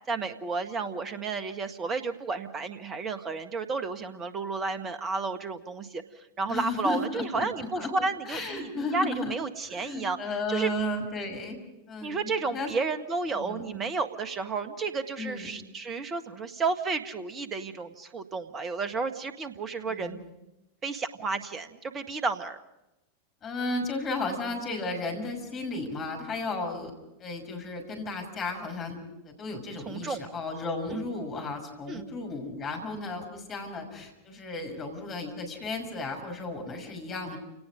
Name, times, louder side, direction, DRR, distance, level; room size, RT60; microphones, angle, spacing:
voice 1, 0.1-10.7 12.0-20.2 20.8-22.6 29.9-30.2 30.9-31.0 31.9-32.1, right 4 dB, 25° right, 10 dB, 1.6 m, -32 dB
voice 2, 6.5-7.9 8.3-9.3 9.6-11.6 11.9-12.7 13.3-13.7 15.2-15.6 19.9-20.3 23.4-26.9 27.2-29.0 29.2-37.4, left 2 dB, 30° left, 3 dB, 6.1 m, -34 dB
29.5 x 18.5 x 5.2 m, 0.92 s
figure-of-eight pair, 90°, 0 cm